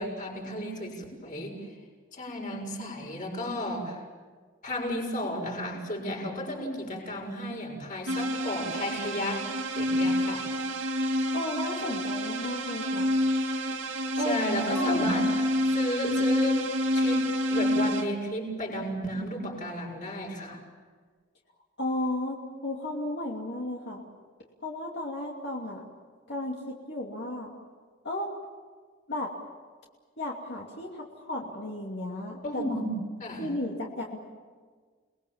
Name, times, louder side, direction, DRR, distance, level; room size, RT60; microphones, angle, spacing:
voice 1, 0.0-1.7 2.1-4.0 4.6-9.5 9.7-10.5 14.1-15.3 15.7-16.6 16.9-17.2 17.5-20.6 32.4-32.9 33.2-33.5, equal, 40° left, -1 dB, 6.8 m, -33 dB
sound 1, 8.1-18.1, equal, 75° right, 2.3 m, -28 dB
voice 2, 11.3-13.1 14.2-14.4 14.7-15.0 21.8-24.0 24.6-25.8 26.3-27.5 28.0-28.3 29.1-29.3 30.2-32.8 33.4-34.2, left 1 dB, 60° left, -2 dB, 2.8 m, -34 dB
29.5 x 21.0 x 7.4 m, 1.5 s
head